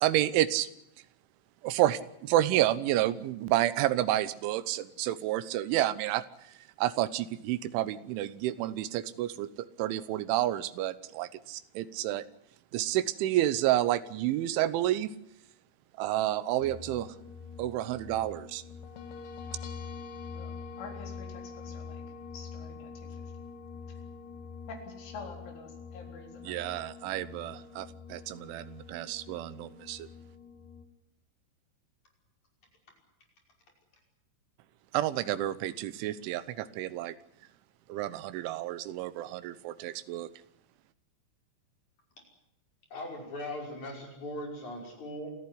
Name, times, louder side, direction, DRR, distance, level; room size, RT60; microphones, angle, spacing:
voice 1, 0.0-0.7 1.6-12.3 12.7-15.1 16.0-17.2 17.6-18.6 26.5-30.1 34.9-37.2 37.9-40.3, right 14 dB, 85° right, 15 dB, 3.5 m, -30 dB
sound 1, 16.6-30.8, left 5 dB, 55° left, 2.9 m, -45 dB
voice 2, 20.3-22.0 22.3-23.3 23.9-24.0 24.7-26.6, left 4 dB, 85° left, 4 dB, 6.3 m, -47 dB
voice 3, 42.9-45.4, left 1 dB, 40° left, 2 dB, 6.5 m, -39 dB
28.0 x 14.0 x 9.8 m, 0.79 s
omnidirectional pair, 5.4 m